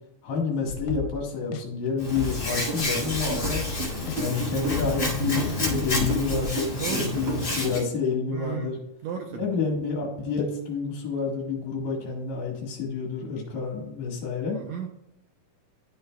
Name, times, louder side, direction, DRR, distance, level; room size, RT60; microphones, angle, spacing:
voice 1, 0.2-3.6 4.1-8.8 9.3-14.6, left 5 dB, 65° left, -2 dB, 2.8 m, -29 dB
sound 1, 0.7-1.2 1.5-1.6 2.0-2.5 2.8-3.8 4.1-4.2 4.6-6.5, left 6 dB, 85° left, 2.1 m, -34 dB
Hands, 2.0-7.8, left 1 dB, 35° left, 2.3 m, -30 dB
sound 2, 2.7-7.9, right 4 dB, 55° right, 2.6 m, -33 dB
voice 2, 6.8-7.5 8.3-8.7 9.0-9.5 14.5-14.9, right 7 dB, 75° right, 4 dB, 1.6 m, -34 dB
11.0 x 6.9 x 2.2 m, 0.81 s
omnidirectional pair, 3.6 m